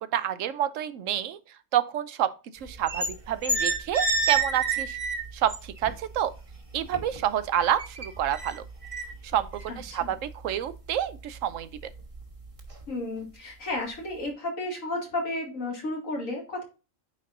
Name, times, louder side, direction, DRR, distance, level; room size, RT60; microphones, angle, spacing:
voice 1, 0.1-1.4 1.7-5.0 5.3-6.3 6.7-8.6 9.3-9.5 9.8-11.9, right 10 dB, 75° right, 1.0 m, -28 dB
sound 1, 2.7-3.1 3.4-5.9 6.3-7.3 7.6-10.7 11.2-11.4 11.8-12.2 12.6-12.8, right 3 dB, 25° right, 1.4 m, -29 dB
voice 2, 9.7-10.1 12.9-16.6, left 2 dB, 85° left, 2.5 m, -33 dB
9.2 x 4.2 x 2.5 m
omnidirectional pair, 1.4 m